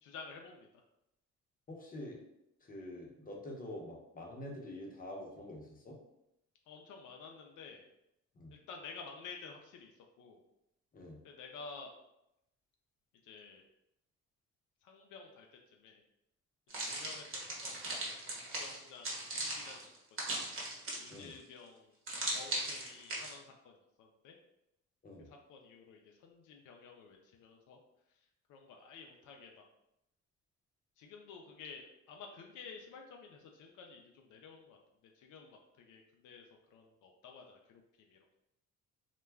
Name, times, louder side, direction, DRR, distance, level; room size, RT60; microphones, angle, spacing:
voice 1, 0.0-0.7 6.7-7.8 8.5-10.4 11.2-11.9 13.2-13.7 14.8-15.5 15.7-16.0 16.7-20.4 21.0-22.0 22.3-24.4 25.2-27.8 28.5-29.5 31.0-34.8 35.2-38.2, left 5 dB, 85° left, 2 dB, 0.5 m, -52 dB
voice 2, 1.7-2.2 2.6-6.0 8.3-8.5 10.9-11.2 21.1-21.3 25.0-25.3, left 1 dB, 30° left, -1 dB, 0.7 m, -46 dB
sound 1, 16.7-21.3 22.1-23.3, right 2 dB, 45° right, 0.9 m, -38 dB
2.2 x 2.1 x 3.3 m, 0.85 s
cardioid pair, 90°, 30 cm